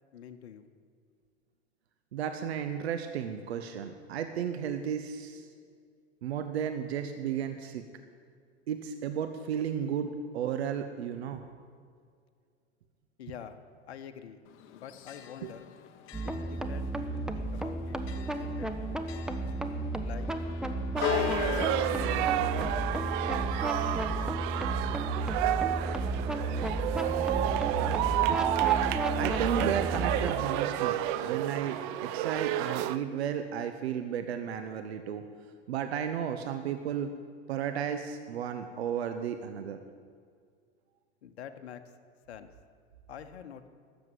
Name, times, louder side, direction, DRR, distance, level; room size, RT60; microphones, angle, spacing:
voice 1, 0.1-0.6 13.2-13.6 13.9-14.4 14.7-15.7 16.2-18.0 18.3-19.0 20.0-20.3 20.9-22.2 22.5-23.4 24.1-24.7 41.2-41.8 42.3-42.5 43.1-43.7, left 8 dB, 65° left, 9 dB, 0.9 m, -46 dB
voice 2, 2.1-5.4 6.2-7.8 8.7-11.4 15.4-15.5 18.2-18.5 29.1-35.2 35.7-37.1 37.5-39.8, right 8 dB, 65° right, 8 dB, 0.9 m, -33 dB
Church bell, 14.5-29.5, left 10 dB, 40° left, 0.9 m, -41 dB
sound 1, 16.1-30.3, right 2 dB, ahead, 0.8 m, -33 dB
sound 2, 21.0-33.0, right 13 dB, 45° right, 0.6 m, -30 dB
13.5 x 7.3 x 9.4 m, 2.1 s
figure-of-eight pair, 85°, 34 cm